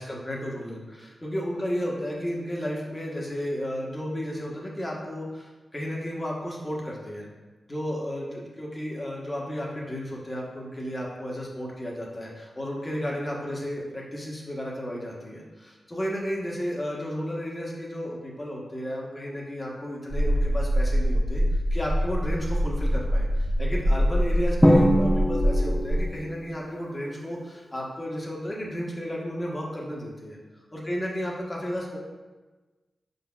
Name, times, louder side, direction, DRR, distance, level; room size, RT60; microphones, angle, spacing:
voice 1, 0.0-7.3 7.7-21.4 21.7-30.4 30.7-32.0, equal, 25° left, -3 dB, 1.2 m, -33 dB
sound 1, 20.1-26.1, equal, 45° right, 0.8 m, -24 dB
Drum, 24.6-26.3, equal, 5° left, 0.6 m, -21 dB
5.0 x 4.1 x 2.3 m, 1.2 s
cardioid pair, 45°, 0 cm